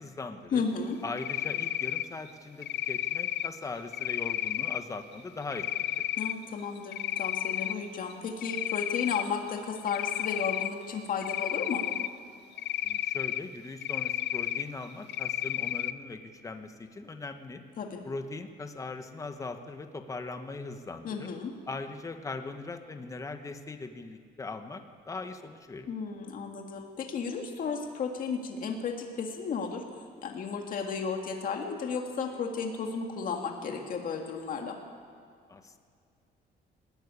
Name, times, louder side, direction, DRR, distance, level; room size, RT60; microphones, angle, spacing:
voice 1, 0.0-0.6 1.0-6.1 12.8-17.6 18.0-21.3 21.6-25.9 35.5-35.8, left 3 dB, 15° left, 7 dB, 1.1 m, -40 dB
voice 2, 0.5-1.0 6.2-11.8 17.8-18.0 21.0-21.5 25.9-29.8 30.2-34.8, left 5 dB, 50° left, 2 dB, 2.0 m, -33 dB
Cricket, 1.2-2.1 2.6-3.5 3.9-4.8 5.5-6.3 6.8-7.7 8.1-9.3 9.9-10.7 11.2-12.1 12.6-13.4 13.8-14.6 15.1-15.9, left 13 dB, 70° left, 0.7 m, -31 dB
20.0 x 13.0 x 9.8 m, 2.3 s
cardioid pair, 160°, 19 cm